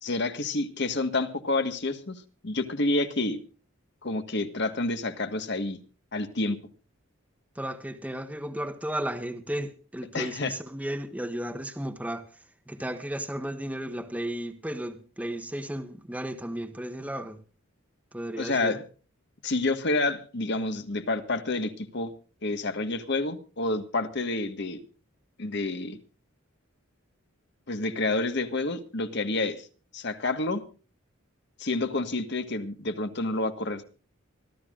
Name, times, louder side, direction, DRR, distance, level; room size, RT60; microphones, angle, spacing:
voice 1, 0.0-3.4 4.0-5.8 6.1-6.6 10.1-10.5 18.4-18.8 19.4-22.1 22.4-24.8 25.4-26.0 27.7-29.7 29.9-30.6 31.6-33.8, left 2 dB, 55° left, 1.6 m, -29 dB
voice 2, 7.5-12.3 12.7-17.4 18.1-18.8, right 1 dB, 5° right, 1.2 m, -34 dB
25.0 x 13.0 x 2.5 m
head